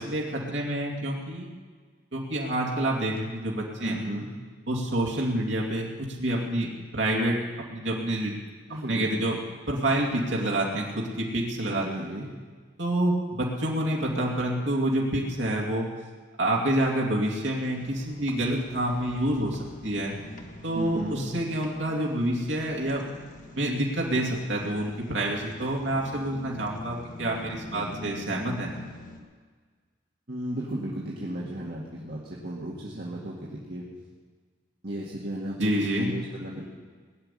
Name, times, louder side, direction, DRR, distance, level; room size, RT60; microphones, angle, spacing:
voice 1, 0.0-1.5 2.1-4.0 4.7-7.4 7.7-8.4 8.9-9.4 9.7-12.1 12.8-15.9 16.4-20.2 20.6-23.0 23.5-28.7 35.6-36.1, right 1 dB, 70° right, -2 dB, 2.4 m, -28 dB
voice 2, 3.8-4.3 8.7-9.3 11.7-12.3 20.7-21.3 27.7-28.0 30.3-33.9 34.8-36.7, right 1 dB, 55° right, -5 dB, 2.2 m, -35 dB
sound 1, 17.7-29.2, left 1 dB, 45° left, 1.8 m, -45 dB
19.5 x 7.2 x 9.9 m, 1.5 s
head